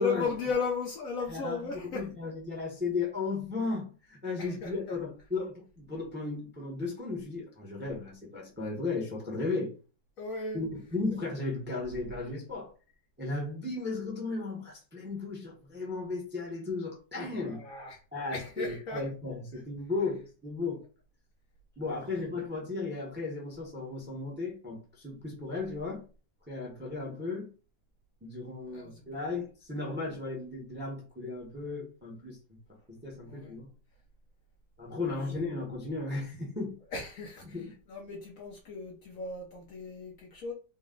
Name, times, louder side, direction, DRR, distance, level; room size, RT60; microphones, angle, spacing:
voice 1, 0.0-2.1 4.4-4.7 10.2-10.6 17.4-18.0 18.3-19.1 28.7-29.0 33.2-33.5 35.1-35.3 36.9-40.5, left 4 dB, 60° left, 0.9 m, -36 dB
voice 2, 1.3-9.7 10.5-12.7 13.2-17.7 18.1-20.8 21.8-26.0 26.5-27.5 28.2-32.6 32.9-33.7 34.8-36.8 37.4-37.7, left 3 dB, 10° right, 0.7 m, -35 dB
4.0 x 2.2 x 3.7 m
omnidirectional pair, 1.9 m